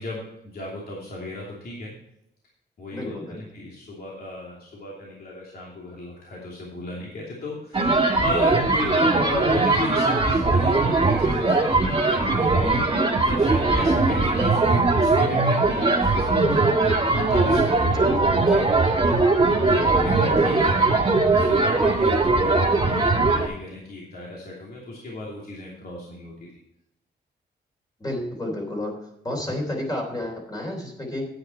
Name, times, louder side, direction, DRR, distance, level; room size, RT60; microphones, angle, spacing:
voice 1, 0.0-1.9 2.8-12.9 13.2-18.8 19.7-20.9 21.3-26.5, left 1 dB, 55° left, -4 dB, 2.9 m, -34 dB
voice 2, 2.9-3.4 18.0-18.2 28.0-29.0 29.2-31.3, left 1 dB, 20° left, 0 dB, 3.3 m, -30 dB
sound 1, 7.7-23.5, right 3 dB, 30° right, 1.9 m, -20 dB
9.7 x 9.6 x 4.5 m, 0.81 s
wide cardioid pair, 140°, 18 cm